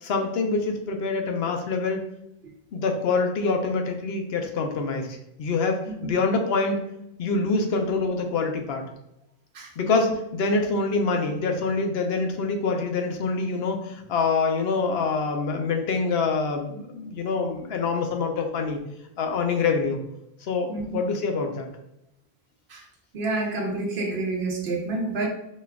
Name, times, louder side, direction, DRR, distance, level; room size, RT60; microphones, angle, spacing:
voice 1, 0.0-2.0 2.7-6.8 7.2-8.8 9.8-18.8 19.2-20.0 20.4-21.7, left 4 dB, 75° left, 4 dB, 0.9 m, -25 dB
voice 2, 23.1-25.3, right 2 dB, 85° right, 2 dB, 1.0 m, -28 dB
4.4 x 2.4 x 3.4 m, 0.82 s
omnidirectional pair, 1.0 m